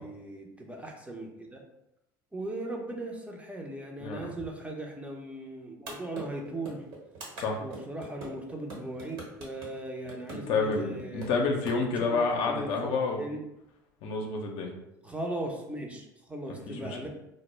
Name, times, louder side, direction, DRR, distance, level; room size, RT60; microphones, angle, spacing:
voice 1, 0.0-1.6 2.3-6.8 7.6-11.6 12.0-13.4 15.0-17.1, right 1 dB, 10° right, 1 dB, 0.5 m, -38 dB
sound 1, 5.9-11.8, right 3 dB, 65° right, 1.0 m, -42 dB
voice 2, 10.3-13.2 14.0-14.7 16.7-17.0, left 4 dB, 60° left, 2 dB, 0.5 m, -29 dB
2.1 x 2.0 x 3.1 m, 0.86 s
hypercardioid pair, 75°, 11 cm